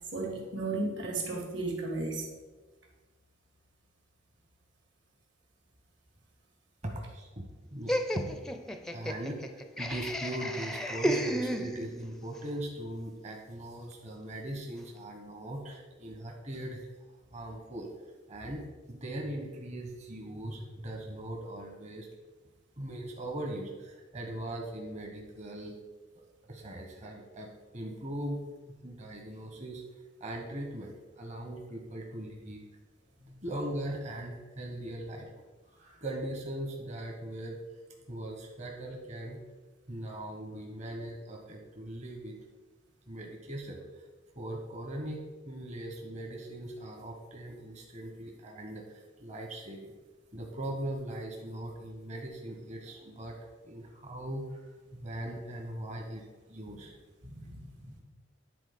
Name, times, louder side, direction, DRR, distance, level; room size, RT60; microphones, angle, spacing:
voice 1, 0.1-2.3 33.2-33.4 56.7-56.8 57.2-58.0, right 2 dB, 65° right, 0 dB, 2.1 m, -35 dB
voice 2, 6.8-7.4 7.7-8.3 8.9-16.9 17.3-17.9 18.3-22.1 22.8-25.8 26.2-28.4 28.7-32.6 33.4-35.3 35.6-37.6 38.1-39.4 39.9-42.4 43.1-44.1 44.4-49.9 50.3-53.4 53.6-57.0, right 1 dB, 35° right, 1 dB, 1.0 m, -40 dB
Laughter, 7.9-12.1, equal, 5° left, 0.4 m, -33 dB
10.0 x 3.9 x 5.2 m, 1.2 s
head